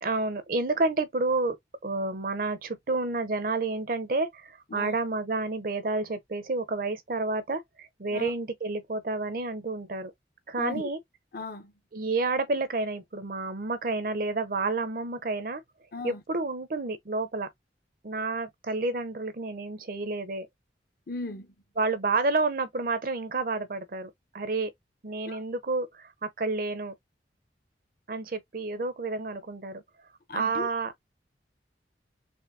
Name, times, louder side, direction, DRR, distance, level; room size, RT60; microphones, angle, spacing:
voice 1, 0.0-1.6 1.8-10.1 10.5-11.0 11.9-15.6 16.0-17.5 18.0-20.5 21.8-24.1 24.3-24.7 25.0-26.9 28.1-29.8 30.3-30.9, right 3 dB, 50° right, 0.6 m, -30 dB
voice 2, 10.6-10.9 11.3-11.7 15.9-16.2 21.1-21.5 25.3-25.4 30.3-30.7, left 3 dB, 55° left, 0.8 m, -37 dB
4.3 x 3.0 x 2.6 m
head